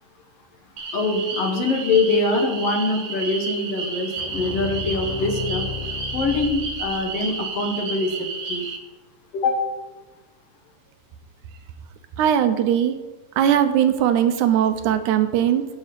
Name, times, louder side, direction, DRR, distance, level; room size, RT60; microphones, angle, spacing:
sound 1, 0.8-8.8, right 4 dB, 55° right, 1.8 m, -32 dB
voice 1, 0.9-8.7 9.3-9.6, left 3 dB, 55° left, 3 dB, 2.0 m, -24 dB
sound 2, 4.2-7.3, left 6 dB, 80° left, 2.6 m, -33 dB
voice 2, 12.2-13.0 13.4-15.8, right 10 dB, 75° right, 9 dB, 2.0 m, -19 dB
11.0 x 7.2 x 5.1 m, 1.2 s
omnidirectional pair, 3.8 m